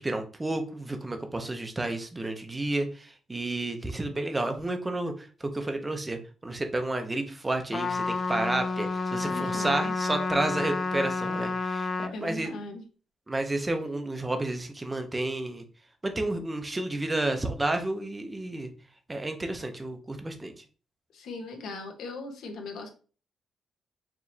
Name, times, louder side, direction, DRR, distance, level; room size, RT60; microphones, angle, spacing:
voice 1, 0.0-12.5 13.3-15.6 16.0-18.7 19.1-20.6, right 2 dB, 15° right, 6 dB, 0.6 m, -31 dB
Trumpet, 7.7-12.1, left 4 dB, 35° left, 0.3 m, -30 dB
voice 2, 9.2-9.9 12.1-12.8 21.1-22.9, left 3 dB, 75° left, 3 dB, 1.0 m, -38 dB
4.7 x 3.1 x 2.7 m, 0.37 s
wide cardioid pair, 170°, 0 cm